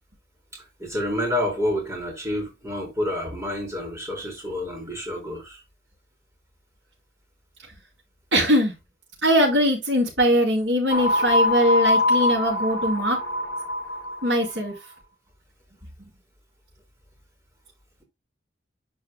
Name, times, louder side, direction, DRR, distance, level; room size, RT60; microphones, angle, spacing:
voice 1, 0.5-5.6, left 1 dB, 15° right, 4.1 m, -29 dB
voice 2, 8.3-8.7 9.2-13.2 14.2-14.7, equal, 75° right, 4.2 m, -21 dB
sound 1, 10.9-14.5, left 1 dB, 55° left, 1.6 m, -23 dB
12.0 x 5.0 x 2.3 m
head